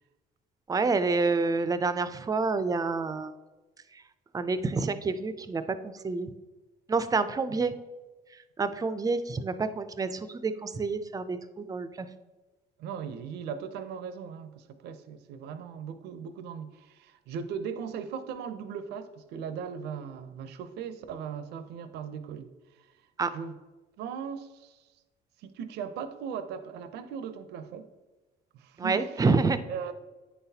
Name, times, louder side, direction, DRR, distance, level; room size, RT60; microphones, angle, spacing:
voice 1, 0.7-3.3 4.3-6.3 6.9-7.7 8.6-12.1 23.2-23.3 28.8-29.6, right 4 dB, 20° right, 12 dB, 0.4 m, -28 dB
voice 2, 12.8-22.5 22.8-22.9 23.3-23.5 24.0-24.8 25.4-27.9 28.5-29.2 29.7-29.9, right 7 dB, 80° right, 11 dB, 0.5 m, -38 dB
9.4 x 4.0 x 2.7 m, 1.2 s
cardioid pair, 110°, 17 cm